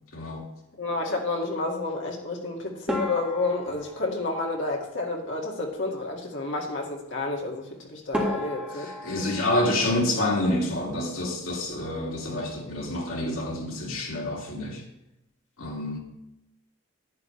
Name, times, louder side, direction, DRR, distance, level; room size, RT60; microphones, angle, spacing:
voice 1, 0.1-0.5 8.7-14.8 15.6-16.0, left 1 dB, 85° left, -2 dB, 2.6 m, -28 dB
voice 2, 0.8-7.6 7.9-8.9, left 3 dB, 60° left, -1 dB, 2.1 m, -30 dB
sound 1, 2.9-5.3 7.6-7.7 8.1-10.9 11.2-11.9 12.2-12.4 12.7-12.8 13.5-13.8, left 1 dB, 5° right, 1.8 m, -35 dB
10.5 x 10.0 x 3.3 m, 0.88 s
head